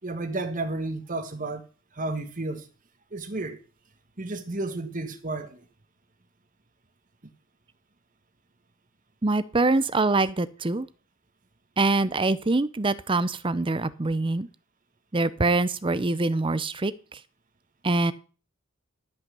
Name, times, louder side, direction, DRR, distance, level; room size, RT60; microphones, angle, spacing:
voice 1, 0.0-1.7 1.9-2.7 3.1-3.6 4.2-5.6, right 2 dB, 40° right, 1.4 m, -32 dB
voice 2, 9.2-10.9 11.8-14.5 15.1-17.2 17.8-18.1, right 2 dB, 25° right, 0.6 m, -24 dB
13.5 x 5.7 x 6.9 m
head